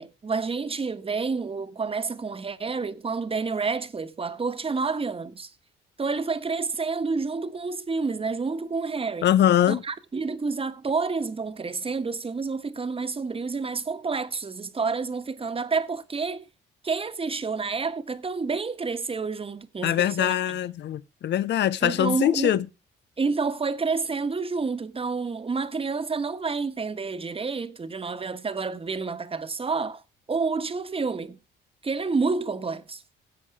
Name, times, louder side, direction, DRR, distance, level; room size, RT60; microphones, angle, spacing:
voice 1, 0.0-5.5 6.0-9.3 9.7-16.5 16.8-20.3 21.8-22.5 23.2-30.0 30.3-31.4 31.8-33.0, right 4 dB, 30° right, 1.4 m, -29 dB
voice 2, 9.2-9.8 19.8-22.6, left 11 dB, 60° left, 0.7 m, -22 dB
16.5 x 7.7 x 4.8 m
cardioid pair, 90°, 20 cm